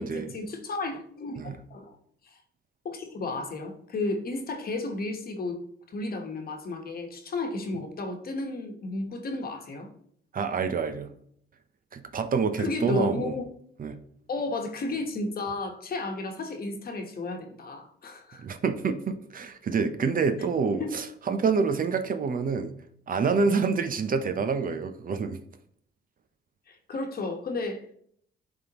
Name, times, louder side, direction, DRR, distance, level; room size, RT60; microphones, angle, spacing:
voice 1, 0.0-2.0 2.2-2.4 2.8-5.6 5.9-9.9 12.6-13.4 14.3-18.4 20.8-21.0 26.7-28.0, left 3 dB, 50° left, 4 dB, 1.2 m, -33 dB
voice 2, 10.3-11.1 11.9-13.4 13.8-14.0 18.4-22.7 23.1-25.4, right 5 dB, 45° right, 9 dB, 0.6 m, -27 dB
11.0 x 3.6 x 2.9 m, 0.66 s
cardioid pair, 90°, 20 cm